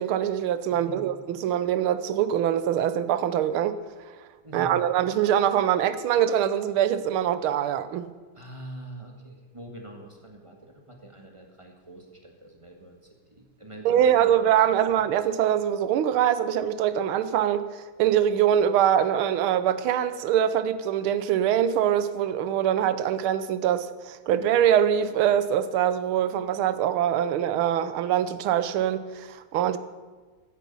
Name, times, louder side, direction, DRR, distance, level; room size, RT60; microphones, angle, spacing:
voice 1, 0.0-3.8 4.5-8.1 13.8-29.8, right 10 dB, 85° right, 1.6 m, -23 dB
voice 2, 0.7-1.1 4.4-4.8 8.3-13.0 13.3-15.0 18.8-18.9, right 1 dB, 15° right, 1.6 m, -45 dB
15.5 x 10.0 x 5.5 m
omnidirectional pair, 2.3 m